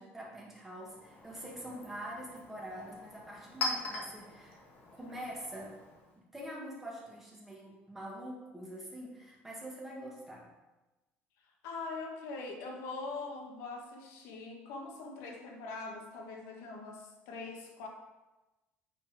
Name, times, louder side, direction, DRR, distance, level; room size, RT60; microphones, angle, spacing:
voice 1, 0.0-4.6 5.0-5.8 6.2-10.5, right 1 dB, 5° right, -4 dB, 1.9 m, -45 dB
Chink clink, 0.7-6.2, left 2 dB, 45° left, 1.7 m, -42 dB
voice 2, 11.6-17.9, left 3 dB, 80° left, 1 dB, 1.5 m, -42 dB
8.8 x 4.3 x 5.0 m, 1.1 s
cardioid pair, 150°, 5 cm